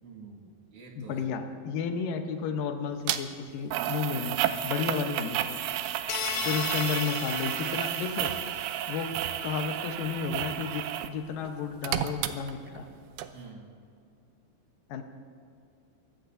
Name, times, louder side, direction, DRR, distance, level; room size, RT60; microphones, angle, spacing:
voice 1, 0.0-1.2 6.2-6.6 13.3-13.7, right 4 dB, 55° right, -1 dB, 3.1 m, -48 dB
voice 2, 1.0-4.3 4.6-5.6 6.5-8.3 8.9-9.1 9.4-12.9 14.9-15.0, left 6 dB, 70° left, 5 dB, 2.5 m, -32 dB
sound 1, 3.1-3.2 3.7-11.2 11.4-12.9 13.2-13.3, right 11 dB, 85° right, 2.6 m, -32 dB
sound 2, 6.1-8.6, left 8 dB, 90° left, 1.6 m, -35 dB
23.5 x 18.0 x 2.7 m, 2.5 s
omnidirectional pair, 4.5 m